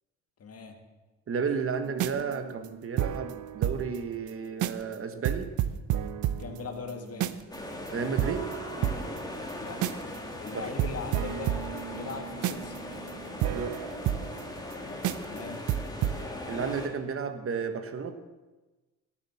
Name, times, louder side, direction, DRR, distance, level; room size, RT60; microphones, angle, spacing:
voice 1, 0.4-0.8 6.4-7.4 9.6-9.9 10.4-11.6 11.9-12.8 15.2-15.7, left 5 dB, 55° left, 5 dB, 2.1 m, -39 dB
voice 2, 1.3-5.5 7.9-8.5 10.5-10.7 13.5-13.8 16.5-18.1, right 6 dB, 45° right, 8 dB, 1.3 m, -32 dB
sound 1, 1.9-4.0 4.3-4.4 4.6-4.9 5.2-7.6 7.9-8.0 8.2-10.2 10.5-10.6 10.8-14.7 15.0-15.4 15.7-16.2, right 11 dB, 80° right, 0.7 m, -31 dB
sound 2, 7.5-16.9, left 1 dB, 15° left, 2.5 m, -39 dB
17.0 x 7.4 x 7.2 m, 1.2 s
cardioid pair, 90°, 30 cm